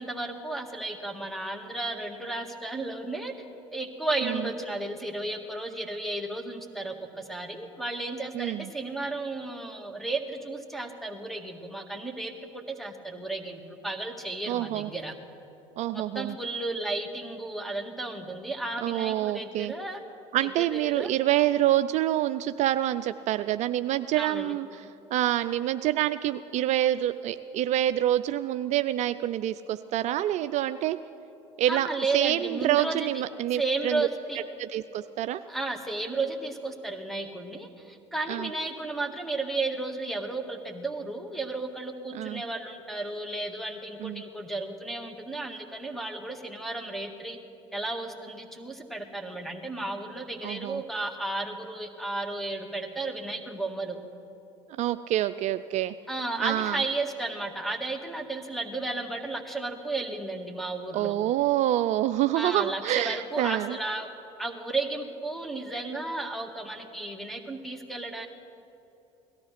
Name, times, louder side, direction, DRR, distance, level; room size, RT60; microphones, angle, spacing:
voice 1, 0.0-3.3 3.7-15.1 15.9-20.0 20.6-21.1 24.2-24.5 31.7-33.1 33.6-34.4 35.5-47.4 47.7-54.0 56.1-61.2 62.3-64.1 64.4-68.3, right 2 dB, ahead, 5 dB, 1.7 m, -33 dB
voice 2, 8.3-8.7 14.5-14.9 15.8-16.4 18.8-19.7 20.3-24.8 25.1-31.0 31.6-34.1 34.6-35.4 38.3-38.5 42.1-42.4 44.0-44.2 50.4-50.8 54.8-55.9 56.4-56.8 60.9-63.8, right 13 dB, 55° right, 11 dB, 0.4 m, -27 dB
17.5 x 13.0 x 5.9 m, 2.9 s
hypercardioid pair, 80°, 15 cm